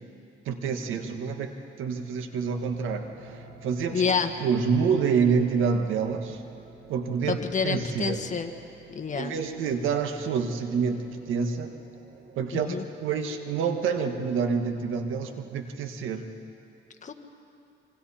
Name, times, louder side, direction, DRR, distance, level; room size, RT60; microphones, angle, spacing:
voice 1, 0.4-4.0 4.4-6.4 6.9-8.2 9.1-11.7 12.3-16.2, right 6 dB, 90° right, 6 dB, 1.6 m, -27 dB
sound 1, 2.5-14.5, right 2 dB, 70° right, 4.2 m, -50 dB
voice 2, 3.9-4.3 7.3-8.5 8.9-9.3 12.5-12.8 17.0-17.1, left 6 dB, 40° left, 6 dB, 1.7 m, -28 dB
26.0 x 25.0 x 4.3 m, 2.7 s
cardioid pair, 90°, 20 cm